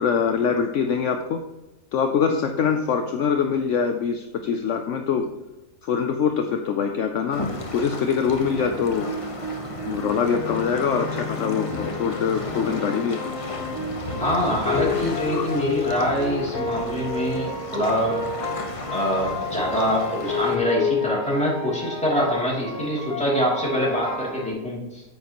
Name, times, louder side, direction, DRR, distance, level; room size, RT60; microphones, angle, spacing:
voice 1, 0.0-1.4 1.9-5.3 5.8-9.1 9.8-13.2 15.3-15.5, left 6 dB, 65° left, 5 dB, 0.9 m, -24 dB
sound 1, 7.3-20.6, left 1 dB, 25° left, 0.9 m, -35 dB
sound 2, 8.5-24.5, left 4 dB, 50° left, 1.7 m, -31 dB
voice 2, 14.2-18.1 18.9-25.0, equal, 5° left, -6 dB, 2.8 m, -24 dB
9.3 x 7.6 x 3.0 m, 1.0 s
omnidirectional pair, 1.5 m